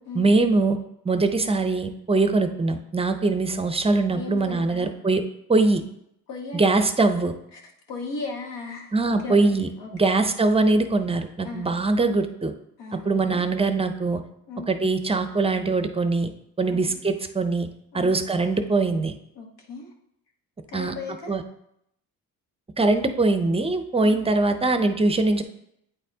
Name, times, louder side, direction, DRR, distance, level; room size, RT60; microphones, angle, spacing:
voice 1, 0.1-0.8 1.0-5.2 5.5-5.8 6.5-7.3 8.9-12.5 12.9-14.2 14.7-16.3 16.6-17.7 17.9-19.1 20.7-20.9 21.3-21.4 22.8-25.4, right 3 dB, 15° right, 8 dB, 0.5 m, -22 dB
voice 2, 4.1-4.9 6.3-6.6 7.5-7.6 7.9-10.1 11.4-11.7 12.8-13.5 14.5-14.7 16.7-16.9 17.9-18.1 19.4-19.9 20.7-21.4 24.0-24.2, left 3 dB, 85° left, 2 dB, 1.3 m, -36 dB
8.8 x 4.3 x 2.7 m, 0.76 s
cardioid pair, 85°, 40 cm